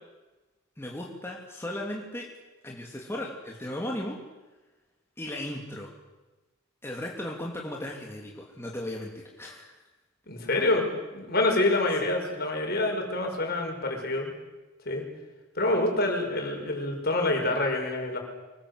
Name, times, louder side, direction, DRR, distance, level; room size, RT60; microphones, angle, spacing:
voice 1, 0.8-2.3 2.6-4.2 5.2-5.9 6.8-9.8, left 1 dB, 10° left, -1 dB, 2.8 m, -36 dB
voice 2, 10.3-14.3 14.9-15.0 15.5-18.2, left 2 dB, 50° left, 2 dB, 5.8 m, -27 dB
25.0 x 20.5 x 8.1 m, 1.1 s
head